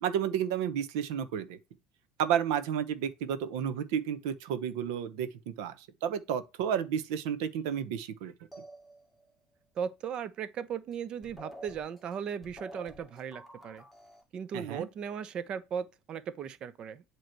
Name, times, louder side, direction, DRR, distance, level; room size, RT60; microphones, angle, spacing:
voice 1, 0.0-1.6 2.2-5.7 6.0-8.3 14.5-14.9, right 9 dB, 80° right, 0.9 m, -31 dB
sound 1, 8.5-9.3 10.9-11.0 11.2-14.2, right 1 dB, ahead, 1.6 m, -49 dB
voice 2, 9.8-13.8 14.3-17.0, right 7 dB, 40° right, 0.7 m, -37 dB
7.8 x 3.1 x 4.5 m
supercardioid pair, 130°, 2 cm